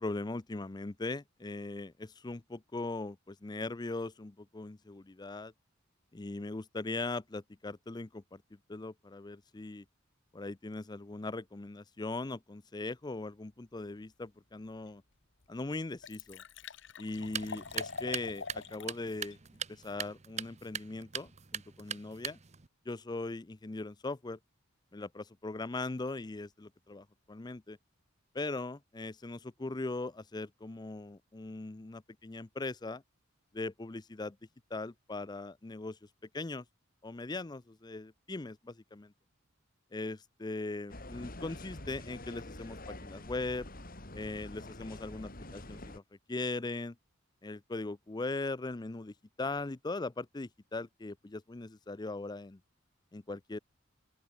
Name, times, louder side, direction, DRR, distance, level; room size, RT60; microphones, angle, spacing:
voice 1, 0.0-5.5 6.1-9.8 10.3-15.0 15.5-16.4 17.0-19.4 19.7-22.4 22.9-24.4 24.9-27.8 28.3-33.0 33.5-34.4 34.7-36.0 36.3-36.6 37.0-39.1 39.9-43.7 44.1-46.0 46.3-47.0 47.4-52.6 53.1-53.6, left 2 dB, 20° left, 0.5 m, -40 dB
Liquid, 14.9-15.0 15.4-15.5 15.7-19.0 19.3-19.4, left 5 dB, 65° left, 1.4 m, -44 dB
sound 1, 17.2-22.7, right 8 dB, 35° right, 0.9 m, -42 dB
sound 2, 40.9-46.0, left 1 dB, 45° left, 5.1 m, -46 dB
open air
head